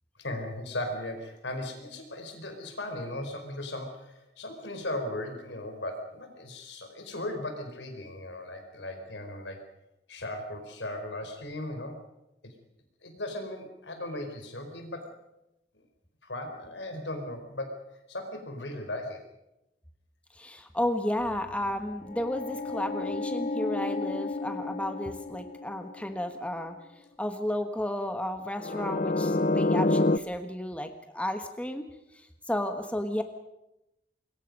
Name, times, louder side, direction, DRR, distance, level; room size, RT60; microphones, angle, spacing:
voice 1, 0.2-9.6 10.1-12.0 12.4-12.5 13.0-15.1 15.7-15.8 16.2-19.2, left 1 dB, 85° left, 5 dB, 4.7 m, -37 dB
voice 2, 20.3-26.8 27.2-33.2, left 1 dB, 5° left, 6 dB, 1.4 m, -33 dB
sound 1, 21.2-26.1 28.6-30.2, left 2 dB, 45° left, 0.7 m, -29 dB
25.5 x 22.0 x 5.5 m, 0.90 s
head